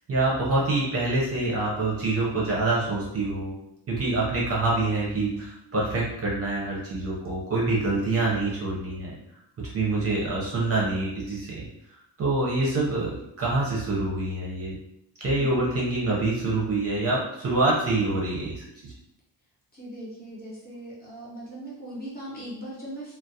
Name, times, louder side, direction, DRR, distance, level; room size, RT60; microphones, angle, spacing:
voice 1, 0.1-3.6 3.9-9.2 9.7-11.7 12.2-14.7 15.2-18.9, right 2 dB, 35° right, -5 dB, 0.5 m, -26 dB
voice 2, 19.7-23.2, right 1 dB, 20° left, -7 dB, 0.6 m, -39 dB
2.3 x 2.1 x 2.6 m, 0.82 s
cardioid pair, 155°, 44 cm